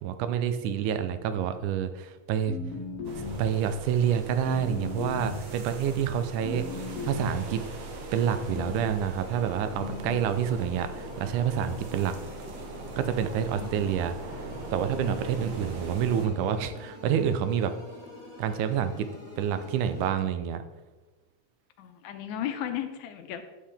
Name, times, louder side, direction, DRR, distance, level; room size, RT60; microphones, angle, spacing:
voice 1, 0.0-2.6 3.4-7.6 8.1-12.2 13.0-17.7 18.4-19.1 19.4-20.6, right 8 dB, 90° right, 10 dB, 2.1 m, -28 dB
sound 1, 2.5-3.6 4.5-5.6 6.4-7.5 8.4-9.0 9.7-10.3, left 3 dB, 55° left, 2.1 m, -37 dB
sound 2, 3.0-16.3, right 2 dB, 60° right, 1.9 m, -41 dB
sound 3, 9.1-20.1, left 2 dB, 10° right, 3.0 m, -47 dB
voice 2, 21.8-23.4, left 10 dB, 80° left, 6 dB, 2.0 m, -35 dB
10.0 x 7.5 x 3.4 m, 1.2 s
omnidirectional pair, 3.5 m